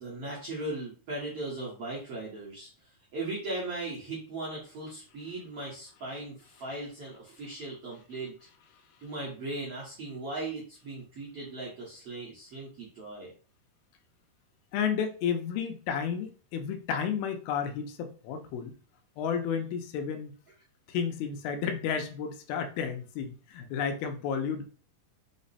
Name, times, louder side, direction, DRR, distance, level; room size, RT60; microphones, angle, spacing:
voice 1, 0.0-2.7 3.1-8.3 9.0-13.3, right 2 dB, 65° right, -6 dB, 1.4 m, -38 dB
voice 2, 14.7-18.7 19.2-20.3 20.9-24.6, left 7 dB, 85° left, 6 dB, 2.5 m, -32 dB
5.7 x 2.1 x 4.0 m, 0.39 s
omnidirectional pair, 4.3 m